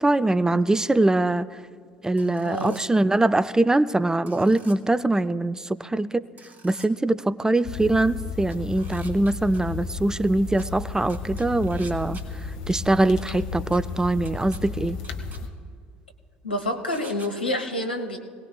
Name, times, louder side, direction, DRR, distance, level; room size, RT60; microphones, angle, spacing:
voice 1, 0.0-1.5 2.0-6.3 6.6-12.2 12.7-15.0, right 2 dB, 10° right, 14 dB, 0.5 m, -22 dB
sound 1, 2.2-2.8 4.3-4.8 6.4-6.9 8.5-9.6 10.6-10.7 11.1-12.2 13.7-13.8 14.3-14.6 15.0-15.4 16.9-17.3, right 3 dB, 35° right, 3.4 m, -47 dB
voice 2, 2.4-2.8 16.4-18.2, left 1 dB, 90° left, 5 dB, 1.1 m, -28 dB
sound 2, 7.6-15.5, left 4 dB, 70° left, 1.1 m, -34 dB
26.0 x 18.5 x 2.3 m, 2.3 s
figure-of-eight pair, 60°, 5 cm